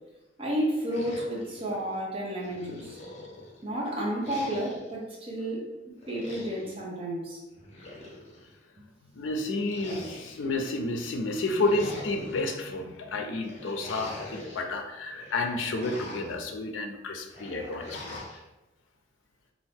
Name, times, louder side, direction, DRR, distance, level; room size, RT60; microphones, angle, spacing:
voice 1, 0.4-3.0 3.6-5.7 6.1-7.4, right 1 dB, 30° right, -4 dB, 0.8 m, -31 dB
sound 1, 0.9-2.0 2.4-3.6 4.2-4.9 6.0-6.8 7.5-8.5 9.6-10.6 11.3-12.6 13.4-14.6 15.0-16.4 17.3-18.4, left 1 dB, 35° left, 0.7 m, -44 dB
voice 2, 9.0-18.2, left 2 dB, 85° left, 4 dB, 0.4 m, -31 dB
2.7 x 2.5 x 3.4 m, 1.0 s
head